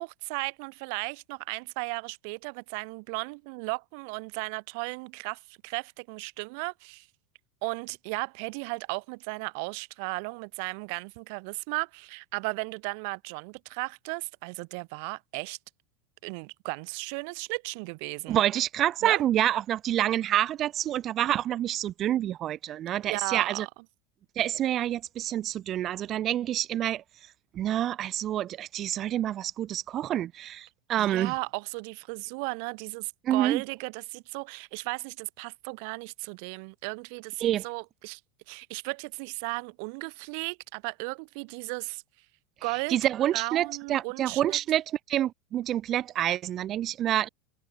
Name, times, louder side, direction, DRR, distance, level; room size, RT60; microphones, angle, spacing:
voice 1, 0.0-7.1 7.6-15.6 16.2-18.4 19.0-19.2 23.0-23.7 31.0-38.2 38.5-42.0 42.6-43.0 43.3-44.6, right 35 dB, 60° right, 1.2 m, -35 dB
voice 2, 18.3-23.7 24.4-31.3 33.2-33.6 37.4-37.6 42.7-47.3, right 12 dB, 35° right, 0.9 m, -28 dB
supercardioid pair, 130°, 0 cm